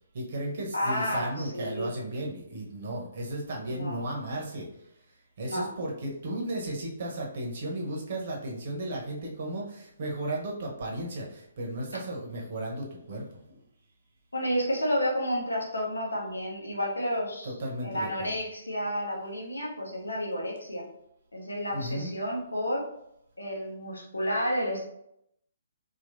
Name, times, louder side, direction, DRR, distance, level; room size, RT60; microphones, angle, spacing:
voice 1, 0.1-13.6 17.4-18.3 21.7-22.2, right 1 dB, 45° right, -1 dB, 1.2 m, -35 dB
voice 2, 0.7-1.9 3.6-4.0 5.4-5.7 14.3-17.5 17.8-20.8 21.3-22.8 23.4-24.8, equal, 80° left, -2 dB, 1.2 m, -31 dB
4.6 x 3.1 x 2.7 m, 0.77 s
figure-of-eight pair, 130°, 0 cm